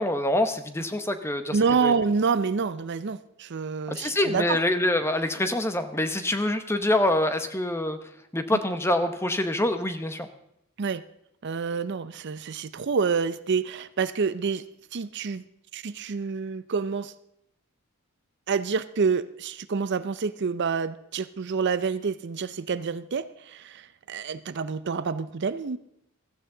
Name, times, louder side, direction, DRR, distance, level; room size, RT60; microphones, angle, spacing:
voice 1, 0.0-1.6 1.8-1.9 3.9-8.0 8.3-10.3, left 1 dB, 10° left, 9 dB, 0.9 m, -25 dB
voice 2, 1.5-4.6 8.5-8.6 10.8-11.0 11.4-14.6 14.9-15.4 15.7-17.1 18.5-25.8, right 5 dB, 55° right, 14 dB, 0.5 m, -28 dB
15.5 x 14.0 x 3.8 m, 0.77 s
head